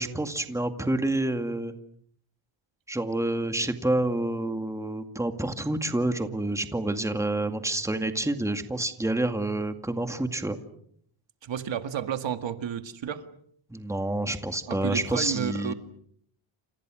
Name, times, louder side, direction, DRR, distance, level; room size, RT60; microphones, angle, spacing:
voice 1, 0.0-1.7 2.9-10.6 13.7-15.7, right 1 dB, 5° right, 7 dB, 2.1 m, -28 dB
voice 2, 11.4-13.2 14.7-15.7, right 8 dB, 60° right, 9 dB, 2.0 m, -31 dB
30.0 x 28.0 x 6.3 m, 0.67 s
wide cardioid pair, 135°, 49 cm